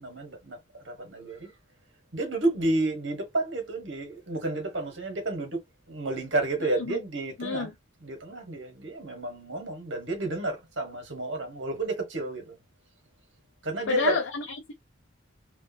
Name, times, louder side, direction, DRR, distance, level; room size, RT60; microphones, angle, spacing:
voice 1, 0.0-1.5 2.1-7.7 8.0-12.6 13.6-14.2, right 2 dB, 65° right, 1.5 m, -31 dB
voice 2, 7.4-7.7 13.9-14.7, left 4 dB, 70° left, 0.7 m, -29 dB
3.4 x 2.5 x 2.7 m
head